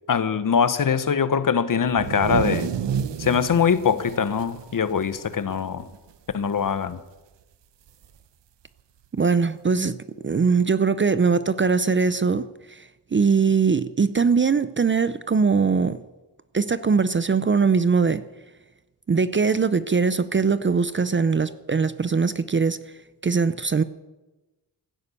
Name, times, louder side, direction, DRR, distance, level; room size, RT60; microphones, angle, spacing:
voice 1, 0.1-2.7 3.2-5.9 6.3-7.0, left 6 dB, 50° left, 1.0 m, -22 dB
sound 1, 1.9-5.6 5.9-6.1 6.5-6.9 8.0-8.1 9.2-9.3, right 8 dB, 80° right, 1.0 m, -30 dB
voice 2, 9.1-10.0 10.2-16.0 16.5-18.2 19.1-22.8 23.2-23.8, right 5 dB, 30° right, 0.5 m, -21 dB
15.5 x 10.5 x 8.3 m
wide cardioid pair, 110°, 42 cm